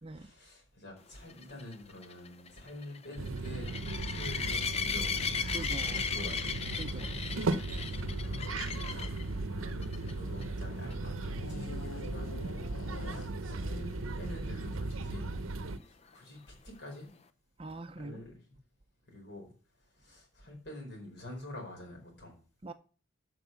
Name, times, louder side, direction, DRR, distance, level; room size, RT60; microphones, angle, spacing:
voice 1, 0.1-3.7 4.0-5.4 5.8-6.5 7.1-12.3 13.0-15.3 15.8-17.1 17.9-18.4 19.1-19.5 19.9-22.4, left 1 dB, 55° left, 4.7 m, -47 dB
sound 1, 1.3-9.2 9.8-10.1 10.4-10.5 10.9-11.0 14.6-14.7, left 6 dB, 30° left, 0.5 m, -36 dB
sound 2, 3.2-15.8, right 2 dB, 85° right, 0.7 m, -37 dB
voice 2, 5.5-6.0 6.7-7.4 17.6-18.2 22.6-22.7, right 2 dB, 25° right, 0.5 m, -43 dB
sound 3, 5.9-10.6 11.3-13.9 14.5-14.7, left 3 dB, 80° left, 0.8 m, -49 dB
8.3 x 6.2 x 6.9 m
head